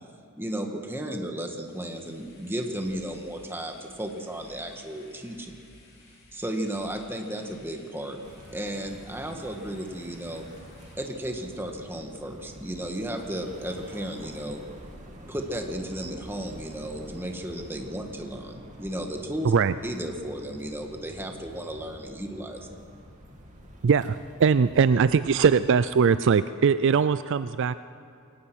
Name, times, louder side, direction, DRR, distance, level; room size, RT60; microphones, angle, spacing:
voice 1, 0.4-5.5 6.3-8.2 8.5-10.5 11.0-14.6 15.3-19.5 19.8-22.7, right 1 dB, 10° right, 3 dB, 1.7 m, -34 dB
sound 1, 1.5-10.9, left 2 dB, 45° left, 4.5 m, -56 dB
sound 2, 8.2-25.8, equal, 35° right, 2.8 m, -47 dB
voice 2, 23.8-27.7, right 6 dB, 55° right, 14 dB, 0.4 m, -21 dB
22.5 x 18.5 x 6.2 m, 2.7 s
head